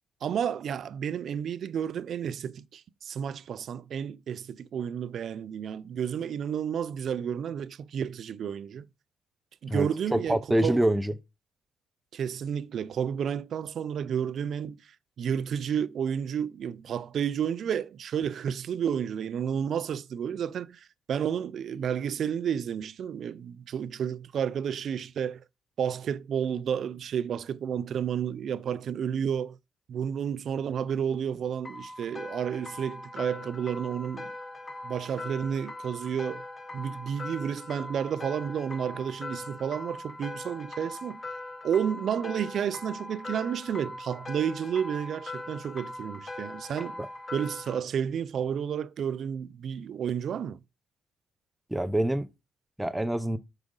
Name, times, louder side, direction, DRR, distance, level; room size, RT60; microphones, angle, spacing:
voice 1, 0.2-8.9 9.6-10.8 12.1-14.8 15.2-25.4 25.8-29.6 29.9-34.3 34.8-36.4 36.7-41.2 41.6-47.0 47.3-50.6, right 8 dB, 60° right, 0.4 m, -31 dB
voice 2, 10.1-11.1 47.0-47.1 51.7-52.3 52.8-53.4, right 1 dB, 10° right, 0.6 m, -25 dB
sound 1, 31.6-47.8, left 2 dB, 30° left, 0.8 m, -41 dB
6.1 x 4.9 x 3.7 m
cardioid pair, 90°, 0 cm